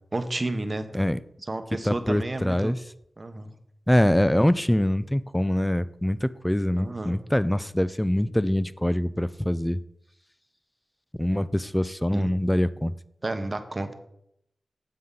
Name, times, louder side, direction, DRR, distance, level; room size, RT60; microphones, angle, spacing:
voice 1, 0.1-0.9 1.5-2.7 3.2-3.5 6.8-7.2 12.1-12.3 13.2-13.9, right 2 dB, 30° right, 0.9 m, -31 dB
voice 2, 1.8-2.8 3.9-9.8 11.2-12.9, left 1 dB, 5° left, 0.4 m, -24 dB
9.6 x 7.6 x 3.8 m
wide cardioid pair, 105°, 0 cm